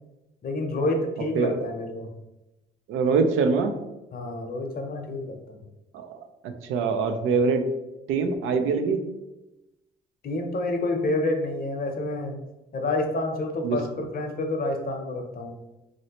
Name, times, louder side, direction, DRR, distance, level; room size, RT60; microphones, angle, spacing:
voice 1, 0.4-2.1 4.1-5.6 10.2-12.3 12.7-15.6, left 2 dB, 50° left, 3 dB, 0.7 m, -28 dB
voice 2, 2.9-3.8 5.9-7.6 8.1-9.0 13.6-13.8, right 5 dB, 85° right, 6 dB, 0.4 m, -24 dB
3.1 x 2.7 x 2.8 m, 0.99 s
cardioid pair, 90°, 20 cm